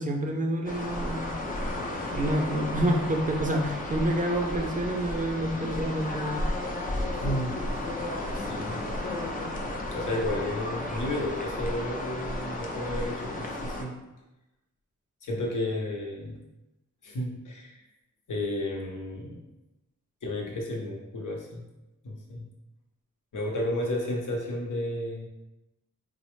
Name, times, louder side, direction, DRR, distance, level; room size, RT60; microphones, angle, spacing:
voice 1, 0.0-1.4 2.1-6.4, right 1 dB, 25° right, 2 dB, 0.4 m, -28 dB
sound 1, 0.6-13.8, left 1 dB, 25° left, 0.5 m, -33 dB
voice 2, 7.2-7.6 7.8-8.8 9.9-14.0 15.2-16.4 17.0-17.8 18.3-19.4 20.2-21.6 22.0-22.5 23.3-25.3, left 1 dB, 70° left, -1 dB, 0.8 m, -32 dB
4.1 x 2.1 x 3.1 m, 0.98 s
wide cardioid pair, 115°, 32 cm